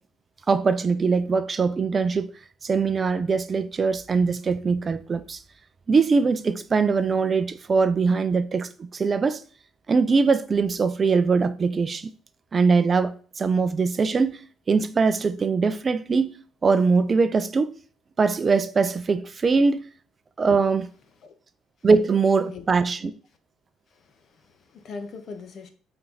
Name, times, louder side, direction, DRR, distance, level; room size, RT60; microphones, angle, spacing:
voice 1, 0.5-2.3 2.6-5.4 5.9-9.4 9.9-12.1 12.5-14.4 14.7-17.7 18.2-19.9 20.4-20.8 21.8-23.1, right 4 dB, 30° right, 0.5 m, -22 dB
voice 2, 23.9-25.7, left 4 dB, 45° left, 1.2 m, -41 dB
8.6 x 4.5 x 4.0 m
cardioid pair, 130°, 0 cm